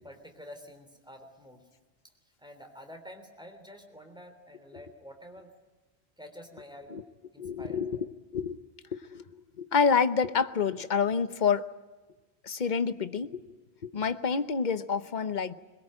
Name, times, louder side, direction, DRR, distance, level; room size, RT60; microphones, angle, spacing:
voice 1, 0.0-1.7 2.0-2.1 2.4-5.5 6.2-7.0 7.3-7.8, equal, 5° right, 4 dB, 3.5 m, -48 dB
voice 2, 7.4-8.6 8.9-9.2 9.6-11.7 12.4-13.4 13.8-15.5, left 6 dB, 45° left, 11 dB, 1.0 m, -28 dB
22.0 x 22.0 x 8.9 m, 1.2 s
omnidirectional pair, 1.1 m